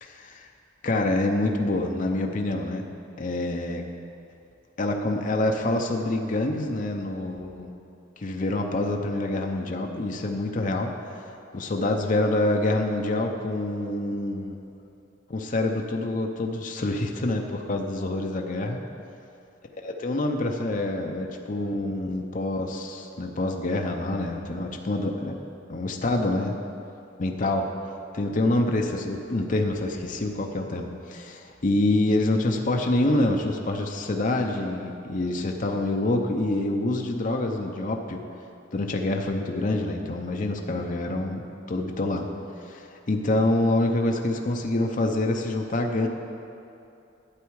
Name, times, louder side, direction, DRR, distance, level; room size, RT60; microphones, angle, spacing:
voice 1, 0.0-0.5 0.8-2.8 3.2-3.8 4.8-7.7 8.2-10.9 11.5-14.6 15.3-18.8 19.8-25.3 25.7-26.5 27.2-27.6 28.1-38.2 38.7-41.4 41.7-42.3 42.6-46.1, left 2 dB, 45° left, 2 dB, 0.7 m, -26 dB
11.5 x 8.1 x 4.7 m, 2.7 s
head